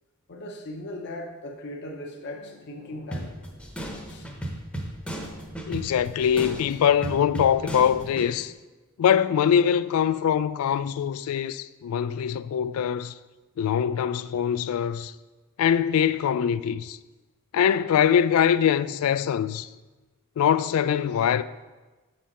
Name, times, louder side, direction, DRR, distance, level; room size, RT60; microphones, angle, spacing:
voice 1, 0.3-3.5 4.1-4.3, left 1 dB, 50° left, 0.8 m, -38 dB
sound 1, 3.1-8.3, right 1 dB, 5° left, 0.8 m, -36 dB
voice 2, 5.7-8.5 9.0-13.1 13.6-15.1 15.6-17.0 17.5-19.7 20.4-21.4, left 8 dB, 80° left, 0.3 m, -23 dB
7.4 x 4.3 x 5.2 m
head